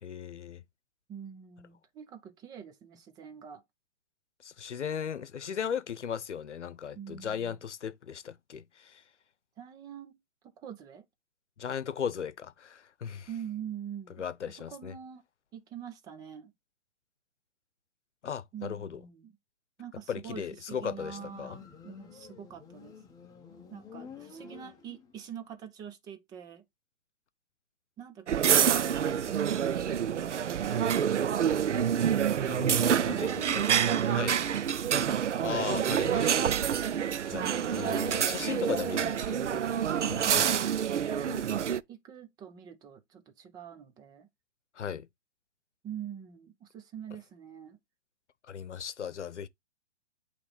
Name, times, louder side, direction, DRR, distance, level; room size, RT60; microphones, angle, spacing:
voice 1, 0.0-0.6 4.4-9.0 11.6-13.3 14.2-14.9 18.2-19.0 20.1-21.6 32.4-33.7 34.1-34.4 35.4-36.6 37.3-39.6 40.1-40.3 44.8-45.1 48.5-49.5, left 7 dB, 80° left, 0.9 m, -37 dB
voice 2, 1.1-3.6 6.9-7.6 9.6-10.2 10.4-11.1 13.3-15.2 15.5-16.5 18.5-19.4 19.8-23.0 23.7-26.6 28.0-32.0 33.1-34.9 40.3-41.5 41.9-44.3 45.8-47.8, right 8 dB, 10° right, 0.6 m, -45 dB
Motorcycle, 21.0-25.3, left 5 dB, 10° left, 1.2 m, -50 dB
sound 1, 28.3-41.8, right 8 dB, 80° right, 0.7 m, -27 dB
8.5 x 3.3 x 4.0 m
hypercardioid pair, 135°, 35 cm